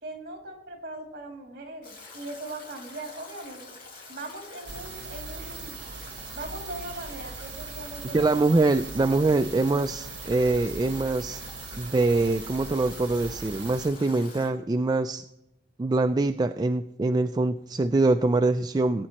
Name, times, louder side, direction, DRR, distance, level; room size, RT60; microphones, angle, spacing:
voice 1, 0.0-3.6 4.1-5.8 6.3-8.5, right 2 dB, 55° right, 2 dB, 2.6 m, -40 dB
Stream / Drip / Trickle dribble, 1.8-14.5, left 3 dB, 55° left, 3.6 m, -46 dB
sound 1, 4.7-13.9, right 5 dB, 90° right, 0.8 m, -40 dB
voice 2, 8.1-11.4 11.8-15.2 15.8-19.1, right 2 dB, 20° right, 7 dB, 0.3 m, -24 dB
19.0 x 8.6 x 3.0 m, 0.88 s
head